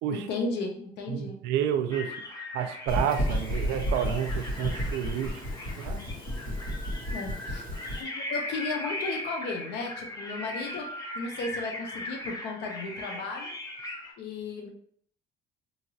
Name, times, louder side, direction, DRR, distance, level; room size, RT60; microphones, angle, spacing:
voice 1, 0.1-1.4 7.1-7.7 8.0-13.5 14.2-14.7, left 3 dB, 80° left, 2 dB, 0.7 m, -35 dB
voice 2, 1.1-2.1 2.5-5.4 5.8-6.0, right 9 dB, 90° right, 9 dB, 0.4 m, -30 dB
sound 1, 1.9-14.1, left 1 dB, 20° left, 0.6 m, -39 dB
sound 2, 2.9-8.0, equal, 60° left, 1.5 m, -32 dB
2.8 x 2.8 x 2.7 m, 0.62 s
cardioid pair, 110°, 17 cm